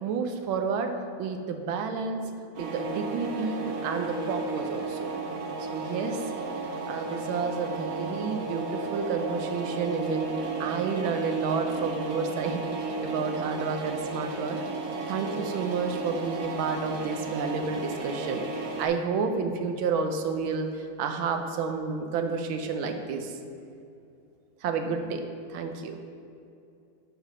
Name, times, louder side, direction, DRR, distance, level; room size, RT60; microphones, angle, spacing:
voice 1, 0.0-2.3 2.6-5.1 5.7-6.3 6.6-14.6 15.1-18.4 18.8-23.4 24.6-25.2 25.5-26.0, right 5 dB, 85° right, 6 dB, 1.4 m, -30 dB
sound 1, 2.5-18.9, right 3 dB, 60° right, 1.0 m, -34 dB
5.6 x 5.4 x 5.9 m, 2.6 s
omnidirectional pair, 2.2 m